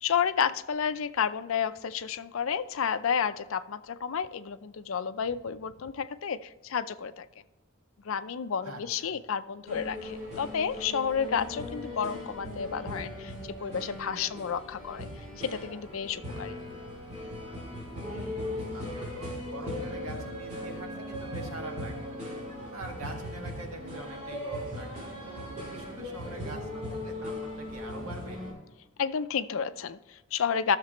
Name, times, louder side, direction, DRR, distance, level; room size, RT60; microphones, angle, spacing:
voice 1, 0.0-7.3 8.0-13.3 13.6-15.1 15.4-16.6 29.0-30.8, left 7 dB, 70° left, 13 dB, 0.5 m, -31 dB
voice 2, 8.6-9.2 18.0-22.1 22.7-28.4, right 1 dB, 90° right, 2 dB, 1.8 m, -44 dB
sound 1, 9.7-28.5, left 1 dB, 35° right, 3.0 m, -38 dB
14.0 x 6.6 x 3.0 m, 1.1 s
head